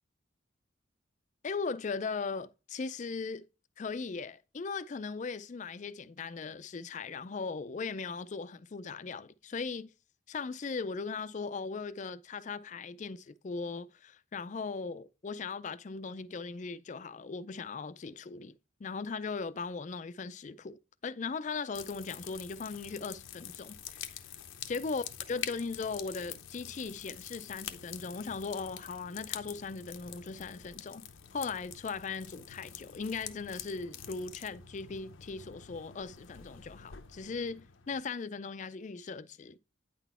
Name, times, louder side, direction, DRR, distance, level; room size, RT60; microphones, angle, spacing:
voice 1, 1.4-3.4 3.8-9.9 10.3-20.8 21.0-24.1 24.7-31.0 31.3-39.6, left 4 dB, 40° left, 0.4 m, -38 dB
sound 1, 21.7-38.0, left 9 dB, 80° left, 0.7 m, -46 dB
9.0 x 4.0 x 4.3 m
head